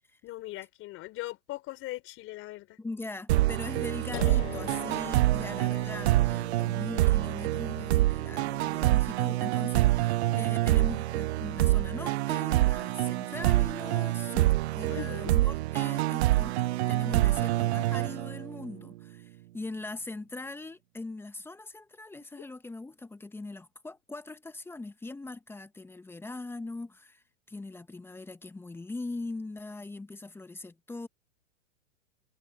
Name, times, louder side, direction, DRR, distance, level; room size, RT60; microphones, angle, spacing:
voice 1, 0.2-2.8 7.9-8.0 14.9-15.3 22.3-22.4, left 17 dB, 35° left, 4.3 m, -40 dB
voice 2, 2.8-31.1, left 2 dB, 5° left, 1.3 m, -41 dB
sound 1, 3.3-18.7, right 16 dB, 60° right, 0.6 m, -26 dB
sound 2, 4.1-11.7, left 16 dB, 60° left, 2.9 m, -46 dB
sound 3, 13.3-15.0 15.3-17.0 17.3-18.1 18.6-19.1, right 8 dB, 20° right, 7.2 m, -61 dB
hypercardioid pair, 125°, 38 cm